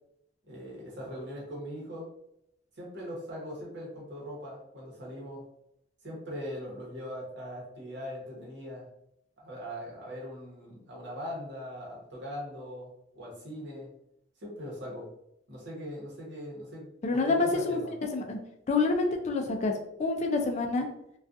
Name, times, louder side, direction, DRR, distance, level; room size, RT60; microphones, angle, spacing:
voice 1, 0.5-2.1 2.8-5.4 6.0-8.8 9.4-12.9 13.1-13.9 14.4-15.1 15.5-17.9, equal, 65° right, -3 dB, 0.9 m, -40 dB
voice 2, 17.0-17.8 18.1-18.4 18.7-19.7 20.0-20.9, left 3 dB, 35° left, 3 dB, 0.3 m, -27 dB
2.4 x 2.3 x 2.5 m, 0.78 s
head